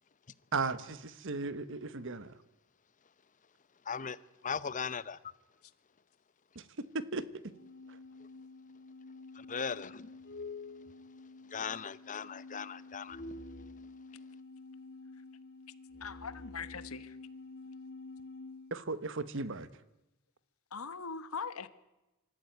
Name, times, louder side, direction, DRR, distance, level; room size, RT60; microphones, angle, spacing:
voice 1, 0.5-2.3 6.5-6.6 6.9-7.2 7.9-8.0 18.7-19.7, right 4 dB, 60° right, 1.2 m, -36 dB
voice 2, 3.9-4.2 4.4-5.2 9.5-10.1 11.5-13.2, left 6 dB, 35° left, 0.8 m, -38 dB
sound 1, 7.5-18.7, left 3 dB, 50° left, 2.1 m, -49 dB
voice 3, 16.0-17.2 20.7-21.7, left 5 dB, 75° left, 1.3 m, -41 dB
25.5 x 14.0 x 9.3 m
head